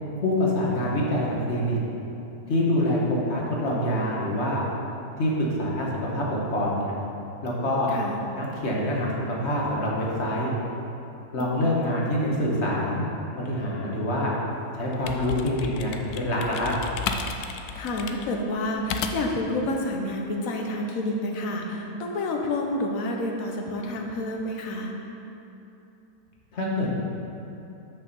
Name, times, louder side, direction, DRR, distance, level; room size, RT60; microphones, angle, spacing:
voice 1, 0.2-1.8 2.5-4.6 5.2-5.3 5.6-6.9 7.4-7.9 8.3-9.1 9.4-10.5 11.3-13.0 13.4-14.3 14.7-16.7 26.5-26.9, left 1 dB, 50° left, -4 dB, 1.5 m, -26 dB
voice 2, 11.4-11.8 17.7-24.9, left 1 dB, 65° left, 2 dB, 1.3 m, -29 dB
sound 1, 14.8-19.4, left 6 dB, 85° left, 1.1 m, -33 dB
6.9 x 6.3 x 5.3 m, 2.9 s
omnidirectional pair, 1.6 m